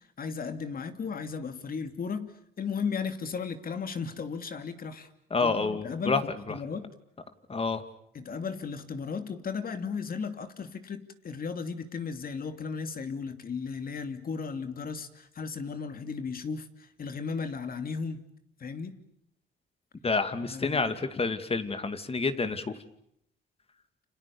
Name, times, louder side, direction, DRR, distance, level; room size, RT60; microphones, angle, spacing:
voice 1, 0.0-2.3 2.6-5.1 5.4-6.9 8.1-18.2 18.6-19.0 20.4-20.9, left 5 dB, 45° left, 8 dB, 2.8 m, -35 dB
voice 2, 5.3-6.2 7.5-7.8 20.0-22.7, left 4 dB, 30° left, 10 dB, 2.5 m, -28 dB
29.5 x 27.0 x 7.2 m, 0.71 s
cardioid pair, 90°, 20 cm